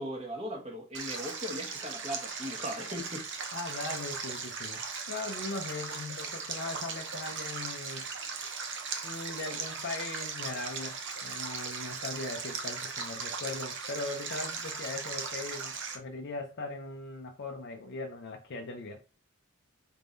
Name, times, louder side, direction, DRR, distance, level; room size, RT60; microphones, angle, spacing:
voice 1, 0.0-3.3, equal, 30° right, 1.1 m, -38 dB
Stream, 0.9-16.0, right 5 dB, 55° right, 0.7 m, -38 dB
voice 2, 3.5-4.8 5.1-8.1 9.0-19.0, left 3 dB, 50° left, 0.5 m, -39 dB
4.3 x 3.5 x 2.6 m
head